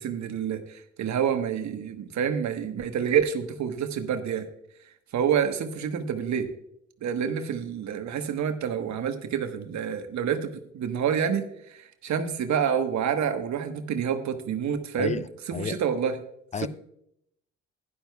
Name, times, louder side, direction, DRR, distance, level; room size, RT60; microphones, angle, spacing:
voice 1, 0.0-4.5 5.1-6.5 7.0-16.2 16.6-16.7, right 8 dB, 55° right, 1.4 m, -28 dB
voice 2, 15.0-15.2 15.5-15.8 16.5-16.7, left 6 dB, 20° left, 0.4 m, -30 dB
16.0 x 11.5 x 2.3 m
hypercardioid pair, 55°, 33 cm